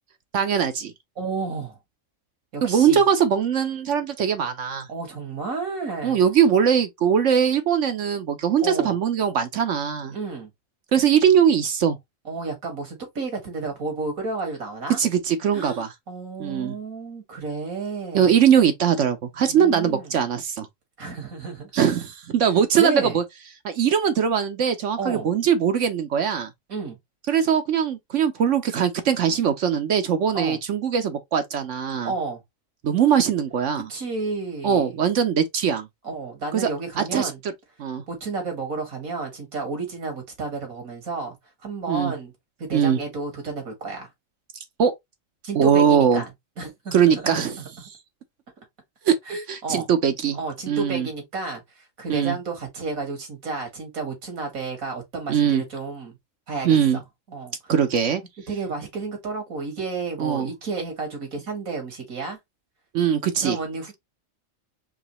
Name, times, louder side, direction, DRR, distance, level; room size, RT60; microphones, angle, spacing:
voice 1, 0.3-0.9 2.6-4.9 6.0-10.1 10.9-12.0 15.0-15.9 16.4-16.8 18.1-20.7 21.7-23.2 23.6-26.5 27.3-32.1 32.8-33.9 34.6-35.9 36.5-36.7 37.0-37.3 37.8-38.0 41.9-42.1 42.7-43.0 44.8-44.9 45.5-46.2 46.9-47.6 49.0-49.2 49.5-50.4 50.7-51.1 52.1-52.4 55.3-55.6 56.6-57.0 57.7-58.2 60.2-60.5 62.9-63.6, right 8 dB, 65° right, 1.0 m, -21 dB
voice 2, 1.2-1.8 2.5-3.0 4.9-6.2 8.6-9.0 10.1-10.5 12.3-15.0 15.5-18.3 19.4-20.1 21.0-21.7 22.7-23.2 25.0-25.3 26.7-27.0 30.3-30.6 32.0-32.4 33.9-34.9 36.0-37.4 38.1-41.4 41.6-42.3 42.6-44.1 45.4-46.3 46.6-46.9 47.2-47.4 49.3-49.9 50.3-56.1 56.5-57.0 57.3-57.7 58.5-62.4 63.4-64.0, right 4 dB, 90° right, 2.4 m, -31 dB
4.9 x 3.2 x 3.1 m
omnidirectional pair, 1.4 m